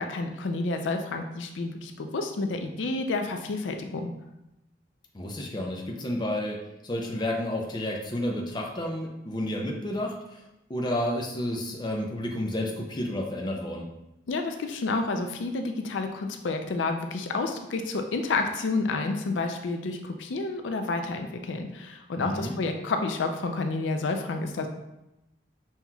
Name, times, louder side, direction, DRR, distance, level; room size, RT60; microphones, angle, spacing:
voice 1, 0.0-4.1 14.3-24.7, left 3 dB, 85° left, 5 dB, 0.4 m, -30 dB
voice 2, 5.1-10.4 10.7-13.9 22.2-22.6, left 1 dB, 25° left, 0 dB, 0.5 m, -31 dB
5.6 x 3.0 x 2.3 m, 0.91 s
head